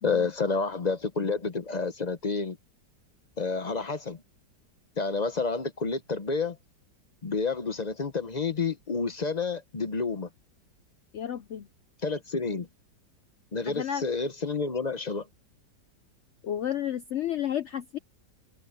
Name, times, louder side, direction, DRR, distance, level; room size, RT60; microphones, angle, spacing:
voice 1, 0.0-2.6 3.4-4.2 5.0-6.6 7.2-10.3 12.0-12.7 13.5-15.3, left 4 dB, 40° left, 0.6 m, -29 dB
voice 2, 11.1-11.7 13.7-14.0 16.4-18.0, left 10 dB, 90° left, 0.6 m, -31 dB
omnidirectional pair, 1.9 m